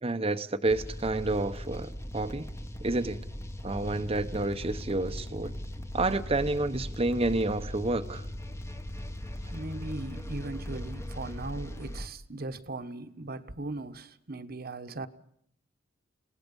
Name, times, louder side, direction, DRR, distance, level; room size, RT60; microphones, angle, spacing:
voice 1, 0.0-2.5 2.8-3.2 3.6-5.5 5.9-8.3, right 2 dB, 30° right, 0.8 m, -29 dB
sound 1, 0.7-12.1, left 1 dB, 15° left, 1.0 m, -39 dB
voice 2, 9.5-15.1, right 2 dB, 55° right, 1.2 m, -38 dB
29.5 x 18.0 x 5.4 m
head